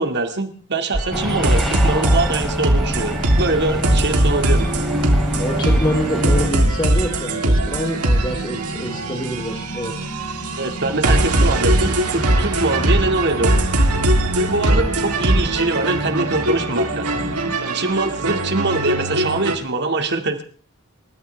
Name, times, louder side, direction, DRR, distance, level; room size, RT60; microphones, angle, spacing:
voice 1, 0.0-4.7 10.6-13.7 14.4-20.4, right 2 dB, 50° right, 6 dB, 2.3 m, -23 dB
sound 1, 0.9-19.5, right 1 dB, 90° right, 3.2 m, -20 dB
sound 2, 1.1-6.5, equal, ahead, 3.9 m, -25 dB
sound 3, 5.4-17.6, equal, 50° left, 3.0 m, -33 dB
voice 2, 5.4-9.9, equal, 20° left, 2 dB, 3.8 m, -26 dB
28.5 x 14.0 x 3.5 m, 0.43 s
head